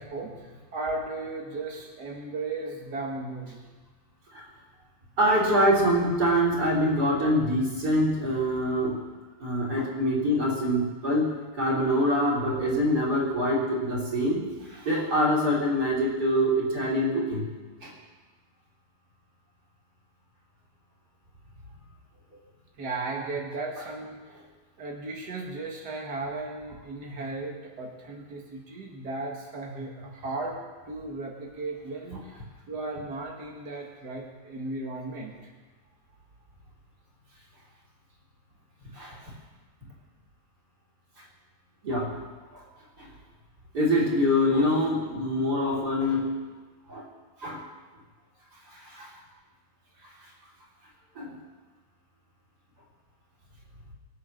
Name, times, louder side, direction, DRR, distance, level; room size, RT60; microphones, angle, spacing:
voice 1, 0.0-3.6 22.8-24.2 24.8-30.6 30.9-32.3 32.7-35.3, right 2 dB, 85° right, 0 dB, 0.8 m, -35 dB
voice 2, 5.2-9.0 9.4-14.4 14.7-17.5 17.8-17.9 38.9-39.2 41.8-42.2 42.5-42.6 43.0-43.1 43.7-46.3 46.9-47.1 47.4-47.6 48.7-49.1 51.2-51.3, equal, 25° right, -4 dB, 3.7 m, -25 dB
23.5 x 8.3 x 6.6 m, 1.3 s
omnidirectional pair, 4.9 m